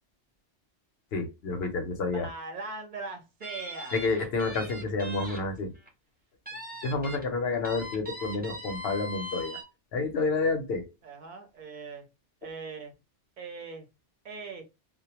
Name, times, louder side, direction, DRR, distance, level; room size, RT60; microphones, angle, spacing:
voice 1, 1.1-2.3 3.9-5.7 6.8-9.6 9.9-10.9, left 3 dB, 65° left, 0.8 m, -29 dB
voice 2, 2.1-4.0 6.5-6.6 7.2-7.3 11.0-12.1 12.4-12.9 13.4-13.9 14.2-14.6, right 3 dB, 50° right, 0.6 m, -40 dB
sound 1, 3.4-5.4 5.7-5.9 6.5-7.2 7.6-9.6, equal, 10° right, 0.6 m, -40 dB
2.2 x 2.1 x 2.8 m
omnidirectional pair, 1.2 m